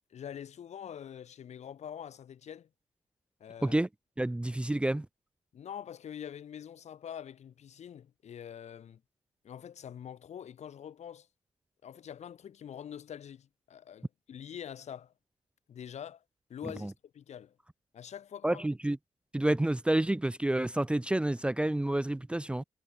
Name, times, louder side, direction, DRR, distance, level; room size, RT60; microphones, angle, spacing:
voice 1, 0.1-2.7 3.4-3.8 5.5-9.0 9.4-11.3 11.8-15.1 15.7-16.2 16.5-17.6 17.9-18.6, left 9 dB, 70° left, 4.4 m, -45 dB
voice 2, 4.2-5.1 16.8-16.9 18.4-19.0 19.3-22.6, right 1 dB, 10° right, 0.7 m, -29 dB
cardioid pair, 115°, 12 cm